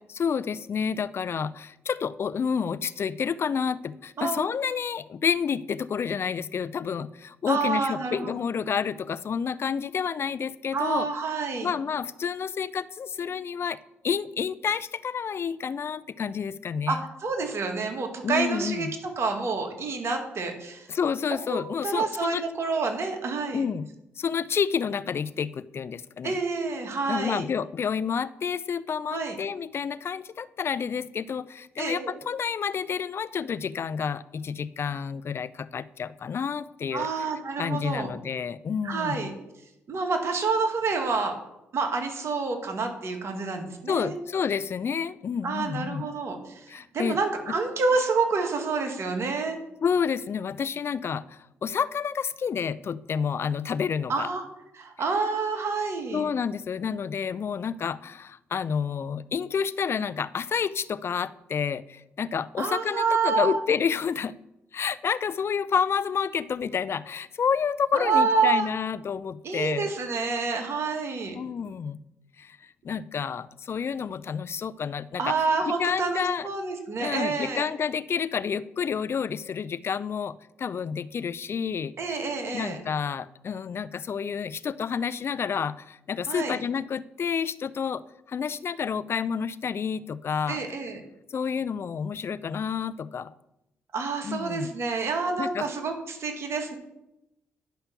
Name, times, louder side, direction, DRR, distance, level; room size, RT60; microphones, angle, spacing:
voice 1, 0.1-11.1 11.6-13.8 14.0-17.0 18.2-18.9 20.9-22.4 23.5-23.9 24.2-26.4 27.1-37.1 37.6-39.4 43.9-46.1 46.7-47.2 49.8-54.3 56.1-64.3 64.7-69.9 71.3-72.0 72.4-72.6 72.8-75.4 75.7-76.5 77.0-82.2 82.5-88.0 88.3-90.6 91.3-93.3 94.2-94.7 95.4-95.7, left 6 dB, 50° left, 17 dB, 0.5 m, -29 dB
voice 2, 4.2-4.5 7.5-8.3 10.7-11.7 16.9-18.9 19.2-20.9 21.5-23.6 26.2-27.5 29.1-29.4 31.8-32.2 36.9-38.1 38.8-39.3 39.9-41.3 41.7-44.2 45.4-46.7 46.9-49.6 54.1-54.4 54.8-56.2 62.6-63.6 67.9-68.7 69.4-71.4 75.2-77.7 82.0-82.8 86.3-86.6 90.5-91.0 93.9-96.7, right 4 dB, 60° right, 5 dB, 2.1 m, -28 dB
10.0 x 5.7 x 6.9 m, 0.88 s
supercardioid pair, 55°, 5 cm